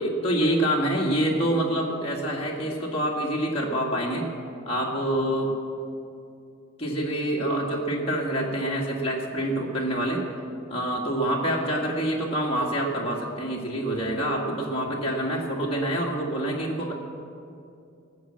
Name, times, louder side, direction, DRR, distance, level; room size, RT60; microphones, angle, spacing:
voice 1, 0.0-4.3 4.7-5.5 6.8-10.2 10.7-16.9, right 1 dB, 25° left, -3 dB, 1.9 m, -26 dB
19.0 x 7.5 x 7.5 m, 2.6 s
head